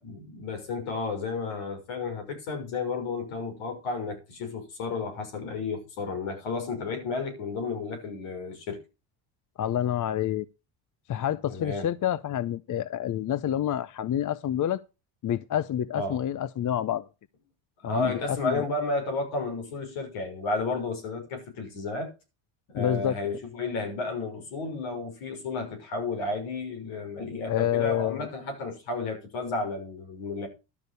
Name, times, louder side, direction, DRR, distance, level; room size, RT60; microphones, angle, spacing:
voice 1, 0.0-8.8 11.5-11.9 15.9-16.2 17.8-22.1 22.7-30.5, left 3 dB, 70° left, 6.3 m, -32 dB
voice 2, 9.6-10.5 11.1-14.8 15.2-17.1 17.8-18.7 22.7-23.1 27.5-28.3, left 10 dB, 40° left, 0.7 m, -28 dB
12.0 x 6.4 x 6.6 m
hypercardioid pair, 70°, 49 cm